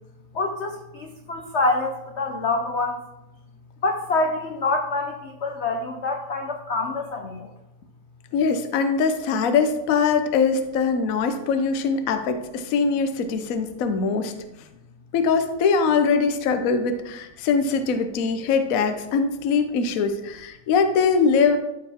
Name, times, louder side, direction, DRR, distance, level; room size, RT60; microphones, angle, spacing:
voice 1, 0.3-3.0 3.8-7.5, left 3 dB, 85° left, 3 dB, 0.6 m, -26 dB
voice 2, 8.3-14.3 15.1-21.6, left 5 dB, 60° left, 7 dB, 0.9 m, -22 dB
13.0 x 4.6 x 3.5 m, 0.93 s
omnidirectional pair, 2.3 m